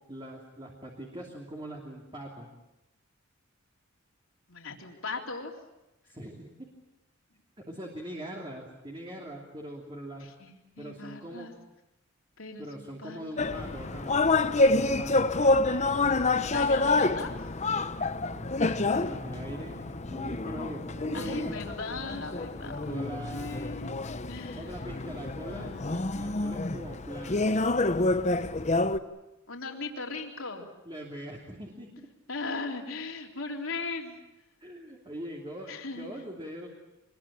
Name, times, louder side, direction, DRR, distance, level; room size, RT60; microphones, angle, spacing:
voice 1, 0.1-2.5 6.0-6.5 7.7-10.3 10.8-11.5 12.6-15.3 18.2-21.6 22.6-23.6 24.6-25.8 26.2-27.5 30.9-32.1 34.6-36.7, right 1 dB, 25° right, -1 dB, 3.0 m, -42 dB
voice 2, 4.5-5.5 10.2-11.5 12.4-13.5 16.4-17.4 21.1-23.9 24.3-24.8 25.4-26.6 29.5-30.7 32.3-34.2 35.7-36.2, left 3 dB, 70° left, 1 dB, 3.6 m, -39 dB
sound 1, 13.4-29.0, left 2 dB, 35° left, 0.8 m, -28 dB
25.0 x 21.5 x 8.8 m, 0.96 s
head